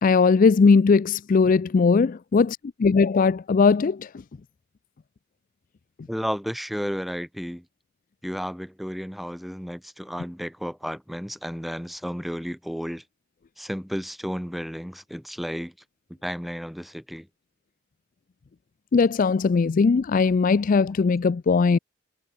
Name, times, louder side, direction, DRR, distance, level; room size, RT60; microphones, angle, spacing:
voice 1, 0.0-4.1 18.9-21.8, left 4 dB, 40° left, 0.4 m, -19 dB
voice 2, 6.1-7.6 8.2-13.0 13.6-15.7 16.2-17.3, equal, ahead, 6.7 m, -32 dB
head